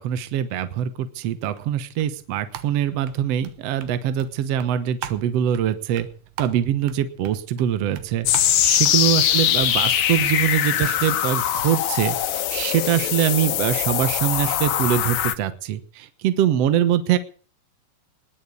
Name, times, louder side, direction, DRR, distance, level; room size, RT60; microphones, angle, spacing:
voice 1, 0.0-6.1 6.4-17.2, right 10 dB, 70° right, 11 dB, 1.5 m, -23 dB
sound 1, 1.2-10.9, right 11 dB, 90° right, 3.2 m, -41 dB
sound 2, 8.3-15.3, left 11 dB, 75° left, 2.9 m, -22 dB
20.5 x 7.5 x 8.3 m, 0.42 s
omnidirectional pair, 4.3 m